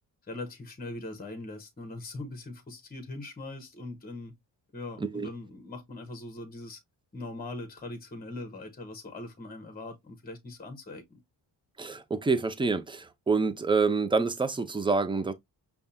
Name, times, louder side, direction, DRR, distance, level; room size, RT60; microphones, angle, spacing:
voice 1, 0.2-4.3 4.7-6.8 7.1-11.2, left 2 dB, 20° left, 0.9 m, -41 dB
voice 2, 11.8-15.3, right 4 dB, 10° right, 0.5 m, -27 dB
5.3 x 2.4 x 2.5 m
cardioid pair, 60°, 47 cm